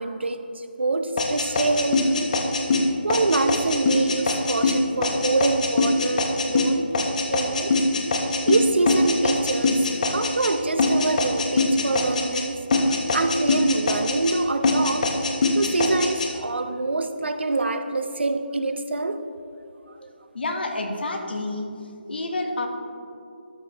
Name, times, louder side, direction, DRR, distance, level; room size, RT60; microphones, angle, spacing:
voice 1, 0.0-2.4 3.0-6.9 7.3-7.7 8.4-15.1 15.5-19.2 20.0-20.1, right 2 dB, 85° right, 9 dB, 0.6 m, -25 dB
sound 1, 1.2-10.5 10.8-12.4 12.7-14.4 14.6-16.3, left 2 dB, 45° left, 0.9 m, -22 dB
voice 2, 20.3-21.7 22.1-22.7, left 2 dB, 65° left, 4 dB, 1.2 m, -28 dB
12.5 x 6.3 x 2.9 m, 2.6 s
figure-of-eight pair, 165°, 6 cm